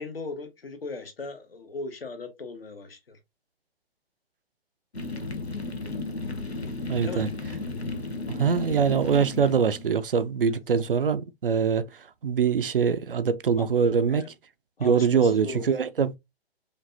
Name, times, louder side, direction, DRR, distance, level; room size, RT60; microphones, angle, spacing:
voice 1, 0.0-3.2 7.0-7.3 13.6-13.7 14.1-14.3 14.8-15.7, left 3 dB, 65° left, 1.2 m, -38 dB
sound 1, 4.9-10.0, left 3 dB, 85° left, 0.9 m, -34 dB
voice 2, 6.9-7.3 8.3-11.8 12.2-14.2 14.8-16.1, right 6 dB, 60° right, 0.5 m, -23 dB
5.0 x 2.6 x 2.6 m
figure-of-eight pair, 130°, 31 cm